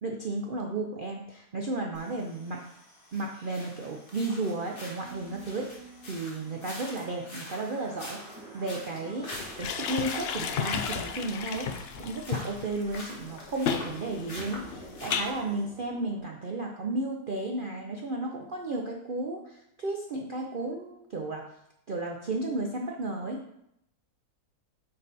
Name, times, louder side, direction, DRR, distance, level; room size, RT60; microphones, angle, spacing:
voice 1, 0.0-2.6 3.1-8.2 8.5-9.3 9.6-11.7 12.0-21.4 21.9-23.4, right 2 dB, 50° right, 0 dB, 0.6 m, -33 dB
sound 1, 1.9-15.6, left 1 dB, 45° left, 1.9 m, -46 dB
sound 2, 4.5-16.2, right 2 dB, 15° right, 2.3 m, -50 dB
sound 3, 9.3-15.3, left 7 dB, 75° left, 0.5 m, -33 dB
8.9 x 4.0 x 4.1 m, 0.80 s
omnidirectional pair, 1.7 m